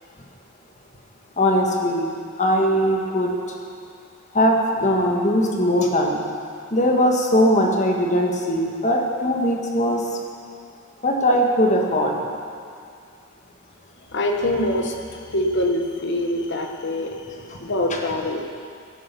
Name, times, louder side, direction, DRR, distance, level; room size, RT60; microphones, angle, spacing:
voice 1, 1.4-2.1 2.4-3.6 4.3-6.2 6.7-10.2 11.0-12.2 17.5-17.6 17.9-18.0, equal, 35° left, 1 dB, 1.4 m, -20 dB
voice 2, 14.1-18.4, left 1 dB, 50° left, 3 dB, 1.3 m, -25 dB
17.0 x 8.7 x 5.4 m, 2.3 s
head